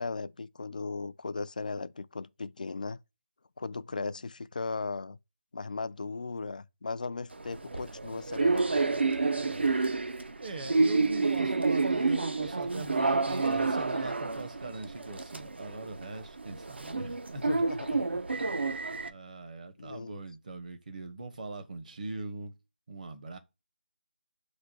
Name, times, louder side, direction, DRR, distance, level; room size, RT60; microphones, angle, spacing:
voice 1, 0.0-3.0 3.6-5.2 5.5-8.7 17.4-18.1 19.8-20.2, left 4 dB, 45° left, 0.3 m, -37 dB
sound 1, 7.3-19.1, right 3 dB, 70° right, 0.6 m, -29 dB
voice 2, 10.4-17.4 18.3-18.6 19.0-22.5 22.9-23.4, right 3 dB, 45° right, 0.8 m, -41 dB
3.1 x 2.2 x 4.0 m
figure-of-eight pair, 165°, 6 cm